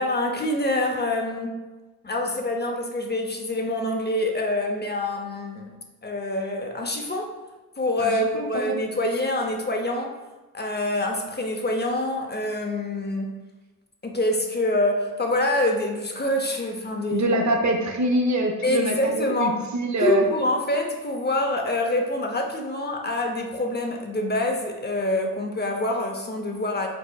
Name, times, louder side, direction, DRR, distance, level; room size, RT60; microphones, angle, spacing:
voice 1, 0.0-1.5 2.0-5.7 6.0-7.3 7.8-10.1 10.5-13.4 14.0-17.3 18.6-19.5 20.0-26.9, left 1 dB, 25° left, 2 dB, 0.6 m, -26 dB
voice 2, 8.0-8.8 17.1-20.3, right 1 dB, 50° right, 3 dB, 0.7 m, -24 dB
4.7 x 4.0 x 2.2 m, 1.2 s
cardioid pair, 65°, 37 cm